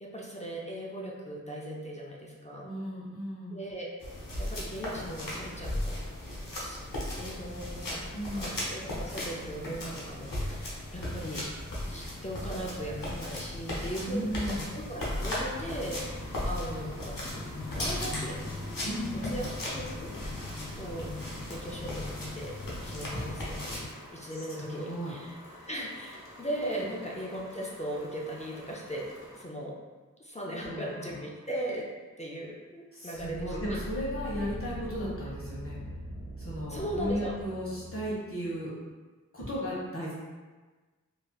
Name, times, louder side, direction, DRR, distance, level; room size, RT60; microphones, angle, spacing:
voice 1, 0.0-2.7 3.5-3.9 4.4-6.1 6.6-6.8 7.2-8.0 8.3-11.5 11.9-17.4 17.7-18.5 19.2-20.2 20.8-21.2 21.5-23.8 24.1-25.4 25.7-29.8 30.2-33.8 36.7-37.4, right 1 dB, 20° left, -4 dB, 0.4 m, -38 dB
voice 2, 2.6-3.6 8.1-8.6 14.0-14.7 18.8-19.3 23.1-23.3 24.3-24.4 24.8-25.1 30.5-31.2 32.9-35.8 36.4-38.7 39.3-40.1, equal, 40° left, -8 dB, 1.3 m, -35 dB
sound 1, 4.0-23.9, left 1 dB, 85° left, 0.8 m, -36 dB
sound 2, 15.1-29.4, left 1 dB, 10° right, 0.9 m, -50 dB
sound 3, 33.1-38.2, right 1 dB, 60° right, 1.1 m, -41 dB
3.2 x 2.7 x 2.3 m, 1.3 s
wide cardioid pair, 50°, 32 cm